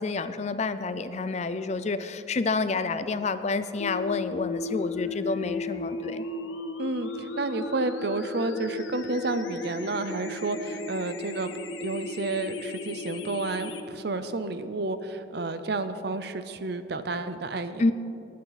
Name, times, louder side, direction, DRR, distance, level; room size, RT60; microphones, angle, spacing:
voice 1, 0.0-6.2 17.8-17.9, left 3 dB, 35° left, 12 dB, 0.4 m, -29 dB
sound 1, 3.8-13.8, left 3 dB, 80° left, 1.0 m, -35 dB
voice 2, 6.8-11.5 11.8-17.8, right 2 dB, 55° right, 11 dB, 0.6 m, -31 dB
20.0 x 9.4 x 4.1 m, 2.9 s
head